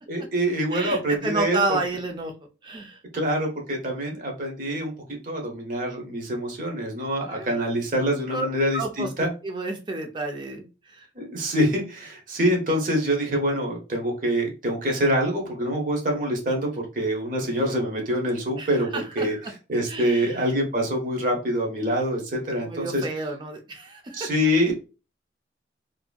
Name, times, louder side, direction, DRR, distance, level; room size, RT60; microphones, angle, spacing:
voice 1, 0.1-1.6 3.1-4.9 5.2-9.3 11.2-18.9 19.2-19.3 19.7-23.0 24.1-24.7, equal, 45° right, 0 dB, 0.9 m, -25 dB
voice 2, 0.7-2.3 2.6-3.0 7.2-7.6 8.3-8.5 8.7-11.1 18.6-19.5 19.9-20.5 22.6-24.3, right 3 dB, 25° right, 3 dB, 0.5 m, -31 dB
2.7 x 2.6 x 2.3 m, 0.32 s
head